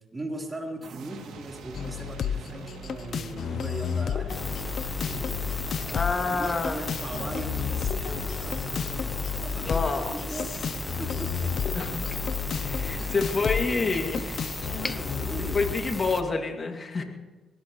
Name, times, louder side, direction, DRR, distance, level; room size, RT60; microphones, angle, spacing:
voice 1, 0.1-4.4 5.0-6.0 6.3-8.9 9.3-11.8 13.0-13.2 14.8-15.6 16.9-17.0, right 1 dB, 20° right, -1 dB, 3.9 m, -39 dB
sound 1, 0.8-5.5, right 7 dB, 80° right, 2.7 m, -46 dB
sound 2, 1.7-15.7, left 8 dB, 55° left, 0.7 m, -32 dB
sound 3, 4.3-16.2, left 1 dB, 15° left, 0.9 m, -35 dB
voice 2, 5.9-6.9 9.6-10.1 11.7-12.0 12.7-14.8 15.5-17.0, left 3 dB, 35° left, 4 dB, 2.4 m, -28 dB
22.0 x 18.0 x 3.2 m, 1.2 s
cardioid pair, 90°, 0 cm